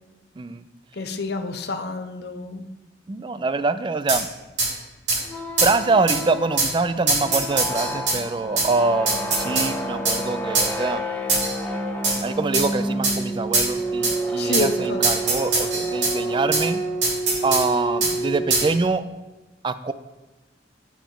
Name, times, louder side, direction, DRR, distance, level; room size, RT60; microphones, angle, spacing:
voice 1, 0.9-2.7 14.4-15.1, left 3 dB, 60° left, 8 dB, 0.7 m, -28 dB
voice 2, 3.1-4.3 5.6-11.1 12.2-16.8 17.4-19.0 19.6-19.9, right 3 dB, 25° right, 13 dB, 0.3 m, -24 dB
sound 1, 4.1-4.2 4.6-4.7 5.1-5.2 5.6-5.7 6.1-6.2 6.6-6.7 7.1-8.2 8.6-8.7 9.1-9.7 10.0-10.2 10.5-10.7 11.3-11.6 12.0-12.2 12.5-12.7 13.0-13.2 13.5-13.7 14.0-14.1 14.5-14.7 15.0-16.1 16.5-16.6 17.0-17.6 18.0-18.1 18.5-18.7, right 3 dB, 70° right, 2.7 m, -22 dB
sound 2, 5.2-19.0, right 1 dB, 10° left, 0.7 m, -29 dB
7.1 x 7.0 x 3.7 m, 1.1 s
head